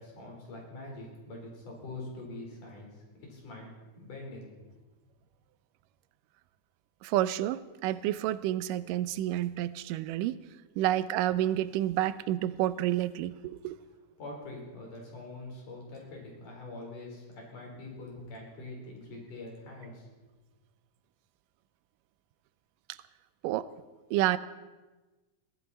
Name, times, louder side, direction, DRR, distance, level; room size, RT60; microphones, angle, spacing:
voice 1, 0.0-2.9 3.2-4.7 14.2-20.1, left 2 dB, 70° left, -1 dB, 5.6 m, -44 dB
voice 2, 7.0-10.4 10.8-13.8 22.9-23.0 23.4-23.7 24.1-24.4, right 13 dB, 90° right, 15 dB, 2.3 m, -29 dB
21.5 x 16.0 x 4.2 m, 1.2 s
omnidirectional pair, 3.7 m